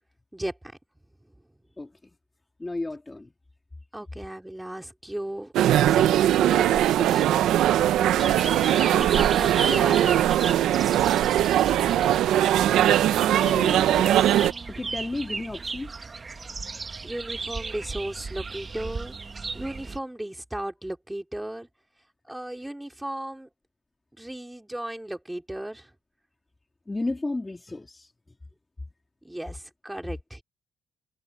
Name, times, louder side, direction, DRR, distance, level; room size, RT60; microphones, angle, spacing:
voice 1, 2.6-3.3 8.1-8.3 13.3-15.9 26.9-28.1, left 2 dB, 20° left, 3.0 m, -33 dB
voice 2, 3.9-5.5 5.8-7.4 8.9-10.2 17.0-19.1 19.5-21.7 22.3-23.5 24.2-25.9 29.2-30.4, right 1 dB, 5° right, 4.2 m, -35 dB
sound 1, 5.5-14.5, right 12 dB, 85° right, 1.1 m, -20 dB
sound 2, 8.2-20.0, right 4 dB, 30° right, 1.6 m, -35 dB
cardioid pair, 90°, 0 cm